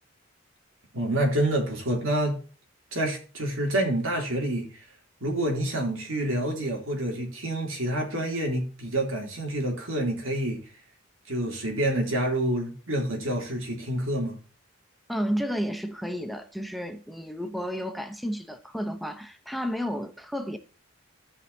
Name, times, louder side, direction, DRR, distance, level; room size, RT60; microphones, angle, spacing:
voice 1, 0.9-2.4 2.9-4.8 5.2-10.6 11.3-14.4, right 1 dB, 80° right, 3.0 m, -28 dB
voice 2, 15.1-20.6, equal, ahead, 0.8 m, -32 dB
16.0 x 5.6 x 2.8 m
head